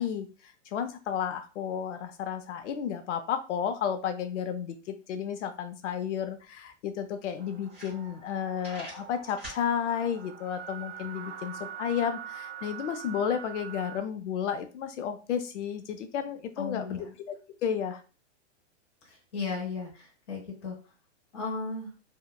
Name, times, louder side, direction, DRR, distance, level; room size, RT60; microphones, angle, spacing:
voice 1, 0.0-18.0, left 8 dB, 85° left, 8 dB, 0.5 m, -32 dB
sound 1, 6.6-6.7 7.2-7.3 7.6-8.3 8.6-9.6, right 1 dB, 15° right, 0.3 m, -43 dB
sound 2, 7.4-14.0, right 9 dB, 70° right, 0.6 m, -44 dB
voice 2, 16.6-17.1 19.3-20.8 21.3-21.9, left 4 dB, 25° left, -3 dB, 0.7 m, -35 dB
2.7 x 2.1 x 2.2 m, 0.34 s
supercardioid pair, 180°, 35 cm